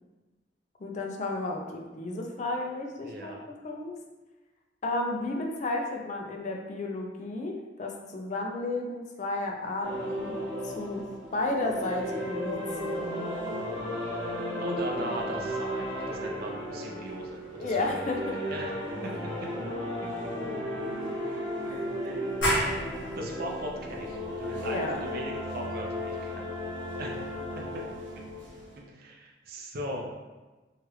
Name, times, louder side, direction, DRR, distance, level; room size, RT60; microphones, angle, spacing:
voice 1, 0.8-3.3 3.6-3.9 4.8-10.4 10.6-11.0 11.3-13.0 17.6-18.4 21.7-21.8 24.6-25.0, left 2 dB, 45° left, 1 dB, 0.4 m, -32 dB
voice 2, 3.0-3.4 14.6-18.1 18.5-18.7 19.0-19.1 22.0-22.4 23.2-26.5 27.0-27.2 27.6-27.8 28.9-30.1, equal, 55° right, -1 dB, 0.5 m, -38 dB
sound 1, 9.8-28.8, equal, 90° right, 1.1 m, -35 dB
sound 2, 22.4-27.8, equal, 90° left, 1.0 m, -35 dB
3.1 x 2.4 x 3.0 m, 1.2 s
head